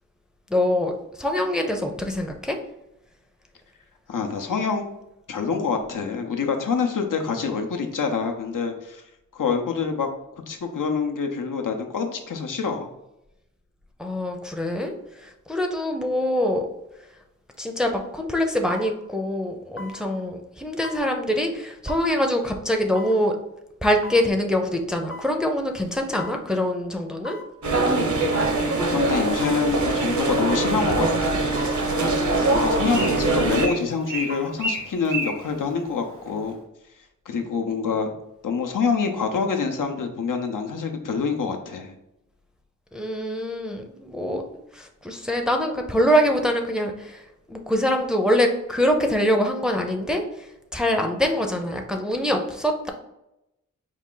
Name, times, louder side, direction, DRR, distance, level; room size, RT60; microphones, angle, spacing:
voice 1, 0.5-2.6 14.0-16.7 17.6-23.4 23.8-27.4 42.9-50.5 50.7-52.9, equal, ahead, 3 dB, 0.5 m, -24 dB
voice 2, 4.1-4.8 5.3-9.0 9.3-10.1 10.5-12.9 28.8-31.5 32.5-36.6 37.3-38.1 38.4-41.9, left 5 dB, 80° left, 4 dB, 0.7 m, -26 dB
sound 1, 17.5-17.7 18.7-18.9 19.8-20.0 20.8-21.1 21.9-22.1 23.0-23.2 24.0-24.3 25.1-25.4 26.2-26.4 27.2-27.5 28.3-28.6 29.4-29.7 30.5-30.7 31.6-31.8 32.6-32.9 34.1-34.6 35.0-35.1, left 1 dB, 40° left, 0.6 m, -38 dB
sound 2, 27.6-33.7, right 2 dB, 70° right, 0.8 m, -22 dB
Bird, 31.4-36.5, right 2 dB, 90° right, 1.2 m, -34 dB
4.7 x 2.4 x 3.7 m, 0.89 s
wide cardioid pair, 70°, 31 cm